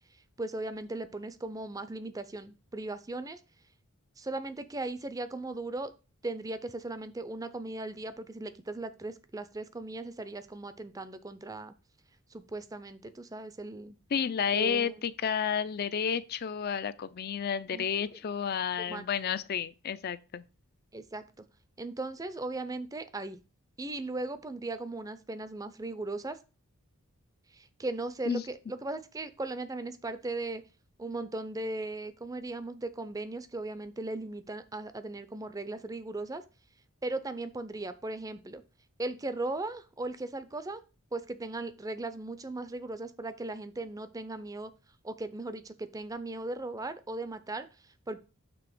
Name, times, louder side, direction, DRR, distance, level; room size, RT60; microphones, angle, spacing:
voice 1, 0.4-3.4 4.2-5.9 6.2-11.7 12.3-14.0 14.5-14.9 17.7-18.1 18.8-19.0 20.9-21.4 21.8-23.4 23.8-26.4 27.5-30.6 31.0-36.4 37.0-38.6 39.0-40.8 41.1-44.7 45.0-48.2, right 2 dB, 15° right, 0.5 m, -38 dB
voice 2, 14.1-20.4 28.3-28.4, left 7 dB, 45° left, 0.4 m, -31 dB
7.0 x 3.4 x 6.0 m
head